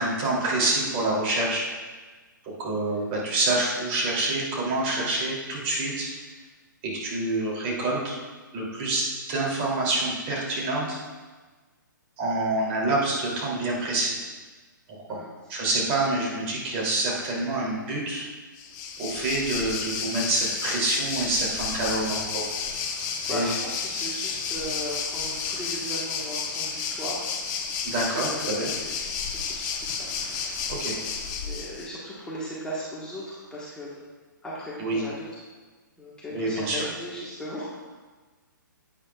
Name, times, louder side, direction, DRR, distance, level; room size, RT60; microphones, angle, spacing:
voice 1, 0.0-1.7 2.4-6.1 6.9-8.2 8.5-9.0 9.3-11.0 12.2-14.1 15.5-18.3 19.0-22.4 23.3-23.5 27.8-28.7 30.7-30.9 34.8-35.0 36.3-36.8, right 2 dB, 35° right, -4 dB, 2.8 m, -27 dB
Waves surf, 18.6-31.9, left 6 dB, 30° left, 0.9 m, -31 dB
voice 2, 23.3-27.3 28.0-28.5 28.8-30.5 31.4-34.0 34.4-35.3 36.0-37.8, equal, 10° left, -8 dB, 1.3 m, -37 dB
10.5 x 8.8 x 2.3 m, 1.3 s
hypercardioid pair, 140°, 11 cm